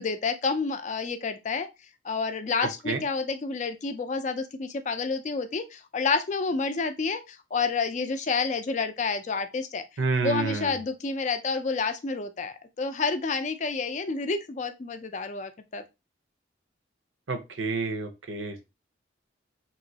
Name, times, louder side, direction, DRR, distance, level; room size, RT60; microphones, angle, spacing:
voice 1, 0.0-1.7 2.0-9.8 10.2-15.8, left 4 dB, 40° left, 10 dB, 0.4 m, -29 dB
voice 2, 10.0-10.8 17.3-18.6, right 4 dB, 90° right, 8 dB, 0.7 m, -29 dB
3.0 x 2.9 x 2.7 m, 0.25 s
head